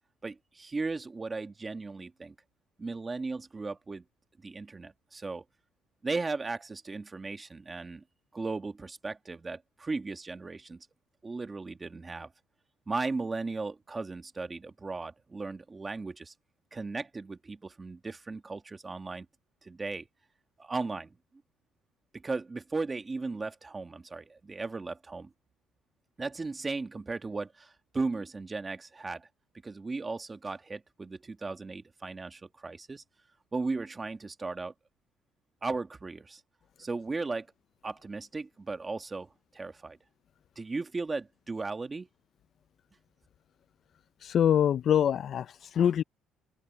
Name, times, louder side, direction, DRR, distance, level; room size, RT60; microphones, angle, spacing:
voice 1, 0.2-2.3 2.8-4.0 4.4-5.4 6.0-8.0 8.3-10.8 11.2-12.3 12.9-16.3 16.7-19.2 19.6-20.1 20.6-21.1 22.1-25.3 26.2-29.3 29.6-33.0 33.5-34.7 35.6-36.4 36.8-37.5 37.8-40.0 40.6-42.1, right 3 dB, 15° right, 1.5 m, -36 dB
voice 2, 44.2-46.0, left 9 dB, 45° left, 0.3 m, -25 dB
open air
cardioid pair, 150°, 0 cm